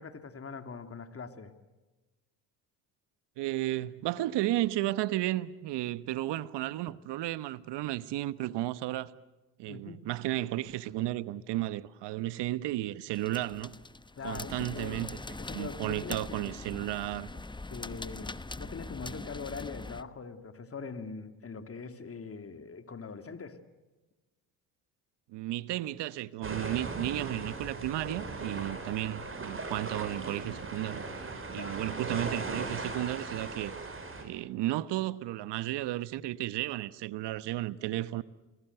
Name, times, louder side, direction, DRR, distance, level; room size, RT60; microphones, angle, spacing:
voice 1, 0.0-1.6 9.7-10.0 14.2-16.6 17.7-23.6 31.6-31.9, left 5 dB, 30° left, 2.5 m, -42 dB
voice 2, 3.4-9.1 9.6-13.8 14.2-15.2 15.5-17.3 25.3-33.7 34.2-38.2, right 15 dB, 65° right, 1.2 m, -33 dB
sound 1, 13.1-20.0, left 2 dB, 10° left, 1.0 m, -42 dB
sound 2, 26.4-34.2, right 3 dB, 30° right, 6.5 m, -38 dB
29.5 x 21.0 x 8.0 m
hypercardioid pair, 65°, 44 cm